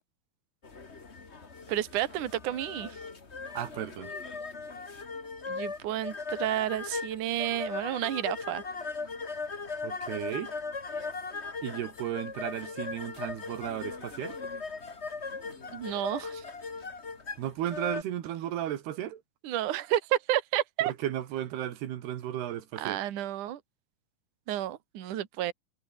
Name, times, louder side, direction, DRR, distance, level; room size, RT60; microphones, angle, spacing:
sound 1, 0.6-18.0, left 4 dB, 30° left, 1.2 m, -38 dB
voice 1, 1.7-3.0 5.5-8.6 15.7-16.4 19.4-20.9 22.8-23.6 24.5-25.5, right 12 dB, 55° right, 3.0 m, -31 dB
voice 2, 3.5-4.1 9.8-10.5 11.6-14.4 17.4-19.2 20.8-23.0, right 11 dB, 80° right, 3.8 m, -34 dB
omnidirectional pair, 4.6 m